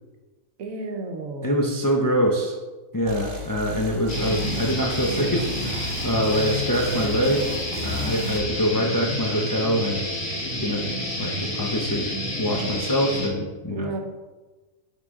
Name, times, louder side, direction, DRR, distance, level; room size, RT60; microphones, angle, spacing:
voice 1, 0.6-1.7 13.7-14.0, right 3 dB, 75° right, 4 dB, 1.3 m, -32 dB
voice 2, 1.4-2.6 2.9-7.5 7.8-10.0 10.6-10.8 11.2-12.1 12.4-13.9, equal, 30° left, 0 dB, 0.3 m, -24 dB
sound 1, 3.1-8.4, equal, 45° right, 1.1 m, -36 dB
sound 2, 4.1-13.3, left 1 dB, 85° left, 2.1 m, -29 dB
11.0 x 3.8 x 3.6 m, 1.2 s
omnidirectional pair, 1.4 m